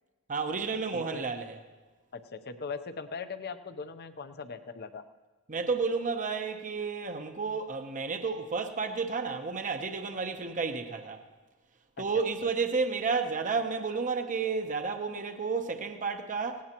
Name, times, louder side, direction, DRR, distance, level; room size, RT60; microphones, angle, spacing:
voice 1, 0.3-1.5 5.5-11.2 12.0-16.6, right 4 dB, 35° right, 0.9 m, -31 dB
voice 2, 0.9-1.3 2.1-5.0 12.0-12.5, left 4 dB, 45° left, 0.8 m, -40 dB
18.5 x 17.0 x 3.0 m
head